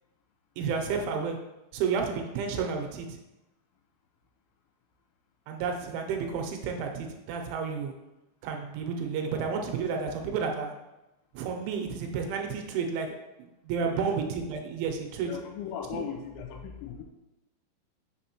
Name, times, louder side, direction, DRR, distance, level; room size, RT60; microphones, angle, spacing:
voice 1, 0.6-1.4 1.7-3.2 5.5-7.9 8.4-10.7 11.3-13.1 13.4-15.3 15.9-16.0, right 5 dB, 85° right, 3 dB, 2.9 m, -31 dB
voice 2, 13.8-14.1 15.2-17.0, left 7 dB, 85° left, 3 dB, 3.0 m, -38 dB
6.7 x 5.6 x 2.9 m, 0.98 s
omnidirectional pair, 5.6 m